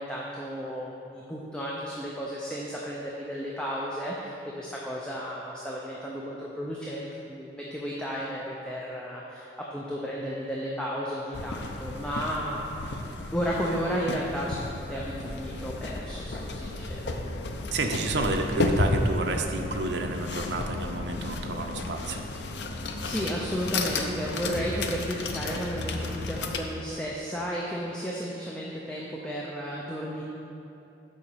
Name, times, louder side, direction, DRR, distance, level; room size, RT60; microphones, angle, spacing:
voice 1, 0.0-12.7 13.3-17.2 23.0-30.2, equal, 5° left, -5 dB, 0.6 m, -33 dB
sound 1, 11.3-26.6, left 2 dB, 70° left, 0.6 m, -33 dB
voice 2, 17.7-22.3, right 3 dB, 70° right, 3 dB, 0.7 m, -30 dB
7.1 x 5.1 x 6.7 m, 2.9 s
head